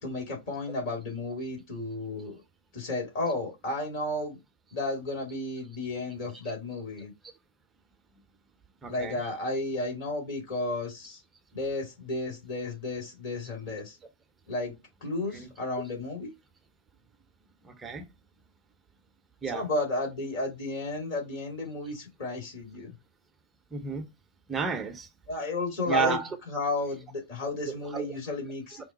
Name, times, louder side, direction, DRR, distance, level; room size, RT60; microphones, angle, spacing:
voice 1, 0.0-2.4 2.7-4.4 4.7-7.1 8.9-11.2 11.5-14.0 14.5-14.7 15.0-16.3 19.5-22.9 25.3-26.2 26.5-28.8, left 2 dB, 55° left, 2.0 m, -33 dB
voice 2, 8.8-9.2 15.3-15.5 17.6-18.1 19.4-19.7 23.7-24.1 24.5-25.1 25.9-26.3 27.9-28.2, right 5 dB, 15° right, 0.7 m, -32 dB
4.6 x 2.0 x 4.1 m
figure-of-eight pair, 90°, 0 cm